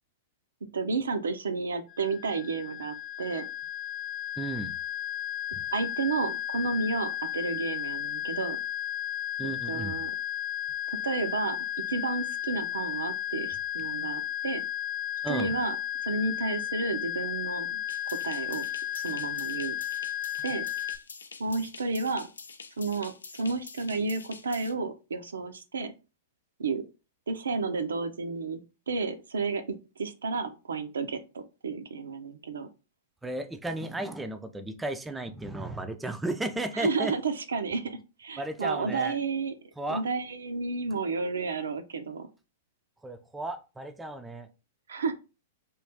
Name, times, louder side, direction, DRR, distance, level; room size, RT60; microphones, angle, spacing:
voice 1, 0.7-3.4 5.7-8.6 9.7-10.1 10.9-11.6 11.9-14.6 15.3-15.8 16.1-17.8 18.1-18.6 18.9-19.8 20.4-20.7 21.4-22.3 22.8-25.9 26.6-26.8 27.3-28.6 28.9-29.6 30.0-32.7 36.7-39.5 39.9-42.3 44.9-45.1, right 4 dB, 75° right, 9 dB, 0.5 m, -31 dB
sound 1, 1.9-21.0, left 11 dB, 45° left, 0.8 m, -34 dB
voice 2, 4.4-4.7 5.5-5.6 9.4-10.0 15.2-15.5 33.2-37.2 38.4-39.2 39.8-40.0 43.0-44.5, right 2 dB, 10° right, 8 dB, 0.4 m, -34 dB
sound 2, 17.9-24.7, left 4 dB, 80° left, 0.4 m, -46 dB
3.1 x 2.5 x 3.4 m, 0.31 s
figure-of-eight pair, 105°, 0 cm